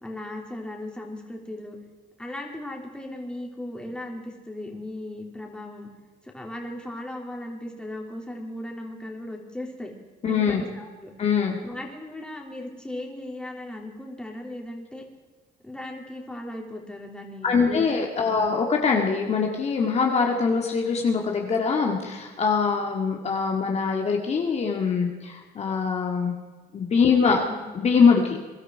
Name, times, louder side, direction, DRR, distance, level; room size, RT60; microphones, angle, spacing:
voice 1, 0.0-1.8 2.2-5.9 6.2-9.9 10.3-11.1 11.6-15.0 15.6-18.5 27.1-27.2 27.5-27.7, left 1 dB, 5° left, 0 dB, 3.3 m, -37 dB
voice 2, 10.2-10.6 11.2-11.6 17.4-26.3 26.7-27.4 27.7-28.4, left 5 dB, 40° left, 1 dB, 2.0 m, -23 dB
22.5 x 12.5 x 4.7 m, 1.3 s
cardioid pair, 110°, 17 cm